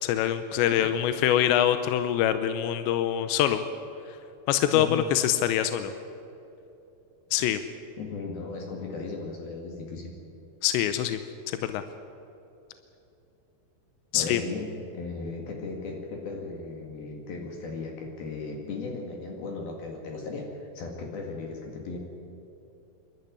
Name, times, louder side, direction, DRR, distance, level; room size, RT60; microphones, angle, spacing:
voice 1, 0.0-3.6 4.5-5.9 7.3-7.6 10.6-11.2 11.5-11.8 14.1-14.4, left 11 dB, 85° left, 10 dB, 3.0 m, -24 dB
voice 2, 4.7-5.1 8.0-10.1 14.1-22.0, left 3 dB, 60° left, 1 dB, 3.8 m, -36 dB
28.0 x 12.5 x 9.6 m, 2.9 s
omnidirectional pair, 5.0 m